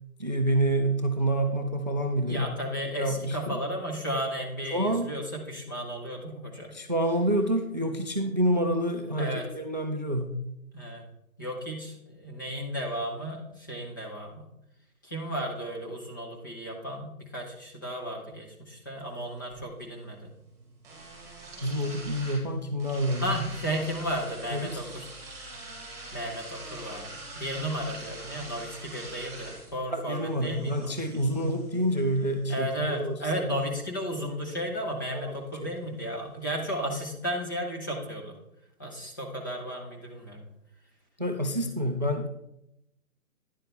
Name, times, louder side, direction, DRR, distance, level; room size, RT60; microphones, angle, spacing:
voice 1, 0.2-2.5 3.0-3.6 4.7-5.1 6.7-10.4 21.6-23.3 24.5-24.8 29.9-33.2 35.1-35.4 35.6-35.7 41.2-42.3, right 1 dB, 30° right, 5 dB, 0.5 m, -28 dB
voice 2, 2.3-6.7 9.2-9.4 10.7-11.0 11.4-14.4 15.0-20.3 23.2-25.1 26.1-30.9 32.5-38.4 38.8-40.4, equal, 15° left, -1 dB, 0.7 m, -34 dB
sound 1, 19.0-37.0, right 2 dB, 5° right, 3.5 m, -46 dB
10.5 x 7.3 x 3.3 m, 0.81 s
figure-of-eight pair, 150°, 45 cm